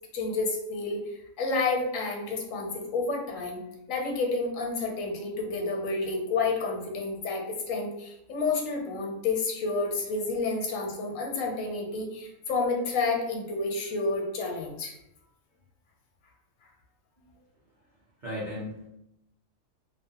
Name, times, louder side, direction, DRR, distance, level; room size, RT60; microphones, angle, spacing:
voice 1, 0.1-3.6 3.9-14.9, left 3 dB, 80° left, 0 dB, 1.0 m, -30 dB
voice 2, 18.2-18.9, left 1 dB, 45° right, -7 dB, 0.7 m, -36 dB
2.6 x 2.1 x 2.7 m, 0.84 s
omnidirectional pair, 1.4 m